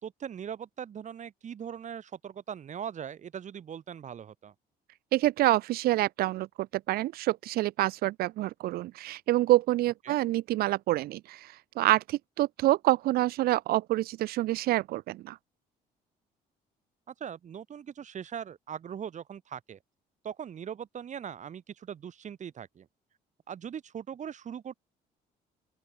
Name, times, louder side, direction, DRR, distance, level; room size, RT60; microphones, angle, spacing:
voice 1, 0.0-4.5 10.1-10.2 17.1-19.8 20.2-22.9 23.5-24.7, right 8 dB, 45° right, 4.1 m, -40 dB
voice 2, 5.1-15.4, right 16 dB, 65° right, 0.4 m, -27 dB
open air
cardioid pair, 110°, 17 cm